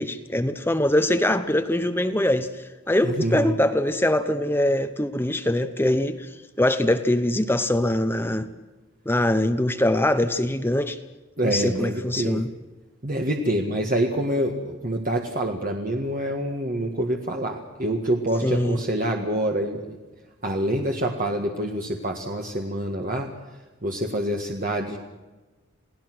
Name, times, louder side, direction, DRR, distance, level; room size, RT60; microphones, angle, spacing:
voice 1, 0.0-6.3 6.6-8.5 9.1-11.0 11.4-12.5 18.4-18.8, left 1 dB, 10° left, 9 dB, 0.9 m, -23 dB
voice 2, 3.0-3.5 11.4-12.4 13.0-20.0 20.4-23.3 23.8-25.0, right 1 dB, 45° right, 2 dB, 1.8 m, -26 dB
28.5 x 18.5 x 6.2 m, 1.2 s
head